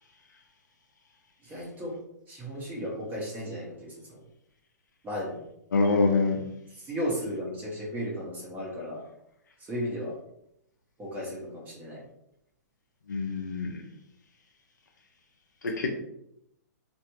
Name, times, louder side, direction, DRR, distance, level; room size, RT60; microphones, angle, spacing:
voice 1, 1.4-2.0 2.3-4.2 5.0-5.4 6.8-9.0 9.7-10.1 11.0-12.0, equal, 20° right, -4 dB, 0.9 m, -35 dB
voice 2, 5.7-6.4 13.1-13.8 15.6-15.9, left 3 dB, 85° left, 2 dB, 0.6 m, -25 dB
3.3 x 2.6 x 2.9 m, 0.78 s
hypercardioid pair, 130°, 10 cm